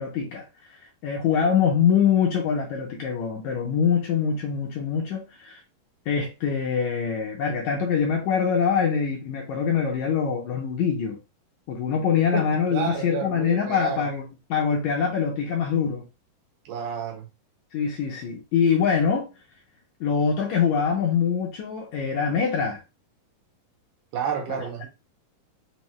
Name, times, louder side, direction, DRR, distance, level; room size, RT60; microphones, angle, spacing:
voice 1, 0.0-5.6 6.1-11.2 11.7-16.0 17.7-19.3 20.0-22.8, left 7 dB, 80° left, 1.7 m, -24 dB
voice 2, 12.1-14.1 16.7-17.3 24.1-24.9, right 7 dB, 75° right, 2.2 m, -31 dB
5.4 x 2.1 x 3.0 m
omnidirectional pair, 3.9 m